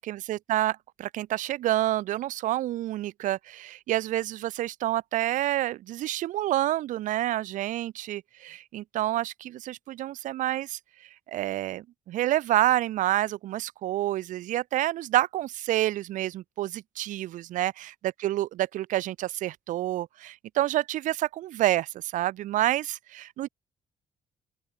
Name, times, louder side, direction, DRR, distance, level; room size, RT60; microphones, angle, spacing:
voice 1, 0.0-10.8 11.3-17.9 18.2-23.5, right 14 dB, 90° right, 1.1 m, -28 dB
open air
cardioid pair, 145°, 13 cm